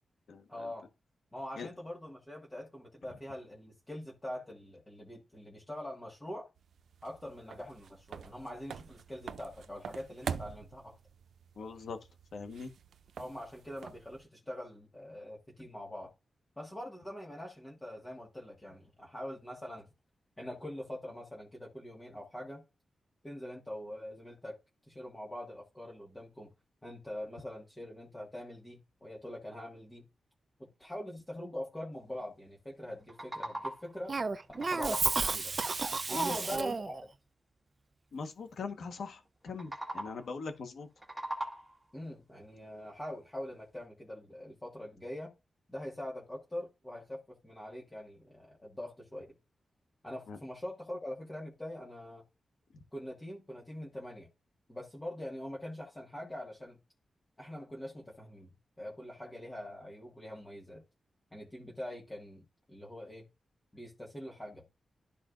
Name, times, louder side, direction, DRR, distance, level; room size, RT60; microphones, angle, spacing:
voice 1, 0.5-0.8 1.3-6.5 7.0-11.0 13.2-16.1 16.6-19.9 20.4-22.6 23.2-24.6 24.9-26.5 26.8-30.0 30.6-34.1 34.7-35.5 36.1-36.9 41.9-45.3 45.7-49.2 50.0-52.2 52.9-54.3 54.7-56.8 57.4-58.5 58.8-60.8 61.3-63.3 63.7-64.6, left 1 dB, 15° left, 1.6 m, -43 dB
sound 1, 6.6-14.2, right 7 dB, 85° right, 0.4 m, -45 dB
voice 2, 11.6-12.0 12.3-12.7 36.1-36.4 38.1-40.9 50.3-50.4 52.7-52.8, left 4 dB, 75° left, 1.3 m, -41 dB
sound 2, 32.9-34.0 34.3-35.5 39.5-40.4 40.8-41.9, right 1 dB, 10° right, 1.7 m, -40 dB
Cough, 34.1-37.0, right 4 dB, 35° right, 0.5 m, -32 dB
12.5 x 4.3 x 2.5 m
wide cardioid pair, 135°, 0 cm